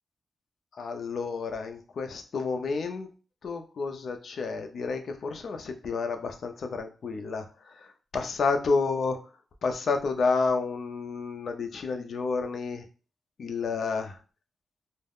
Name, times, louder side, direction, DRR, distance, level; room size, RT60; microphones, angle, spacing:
voice 1, 0.8-3.1 3.4-9.2 9.6-12.8 13.4-14.2, left 4 dB, 55° left, 6 dB, 0.4 m, -30 dB
2.3 x 2.0 x 3.4 m, 0.36 s
wide cardioid pair, 160°, 0 cm